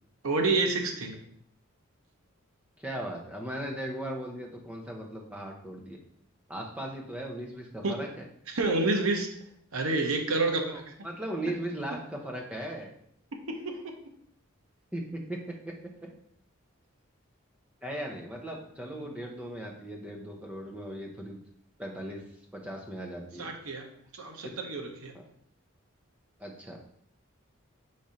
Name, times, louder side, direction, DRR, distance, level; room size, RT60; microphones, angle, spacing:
voice 1, 0.2-1.2 7.8-8.0 8.5-9.3 9.7-10.9 13.5-13.8 18.9-19.1 23.4-23.9 24.1-25.1, right 3 dB, 80° right, 4 dB, 0.7 m, -29 dB
voice 2, 2.8-6.0 6.5-8.3 10.7-12.9 14.9-15.7 17.8-21.4 21.8-22.2 22.5-23.5 24.4-24.6 26.4-26.8, right 1 dB, 5° right, -1 dB, 0.6 m, -38 dB
4.2 x 2.6 x 4.8 m, 0.67 s
head